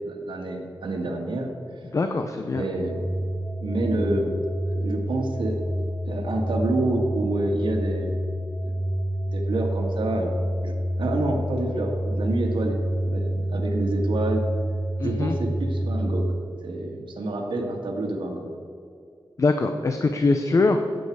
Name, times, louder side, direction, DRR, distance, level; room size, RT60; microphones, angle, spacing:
voice 1, 0.0-1.5 2.6-3.1 3.6-4.3 4.7-8.2 9.3-10.3 10.6-12.8 13.0-14.4 15.0-16.3 16.6-18.5, right 2 dB, 80° right, 1 dB, 1.9 m, -28 dB
voice 2, 1.9-2.6 15.0-15.3 19.4-20.8, left 3 dB, 40° left, 6 dB, 0.6 m, -22 dB
sound 1, 2.5-16.2, right 1 dB, 20° right, 2.9 m, -28 dB
16.5 x 7.9 x 4.7 m, 2.5 s
wide cardioid pair, 175°, 8 cm